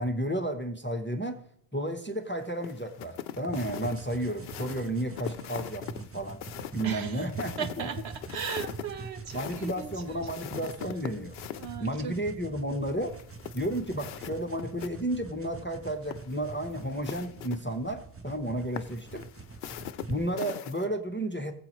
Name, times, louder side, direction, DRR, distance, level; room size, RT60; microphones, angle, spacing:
voice 1, 0.0-1.4 1.7-6.4 6.7-7.9 9.3-11.3 11.8-13.1 13.5-19.2 20.1-21.5, right 1 dB, 10° left, 7 dB, 0.7 m, -32 dB
sound 1, 2.6-11.7 13.1-14.9 15.2-15.3 16.0-17.6 18.8-20.9, left 10 dB, 70° left, 0.8 m, -42 dB
sound 2, 3.5-20.2, right 4 dB, 20° right, 0.4 m, -45 dB
voice 2, 6.8-7.3 7.6-10.3 11.6-12.1, right 7 dB, 85° right, 9 dB, 1.1 m, -37 dB
18.5 x 7.8 x 3.1 m, 0.66 s
omnidirectional pair, 1.1 m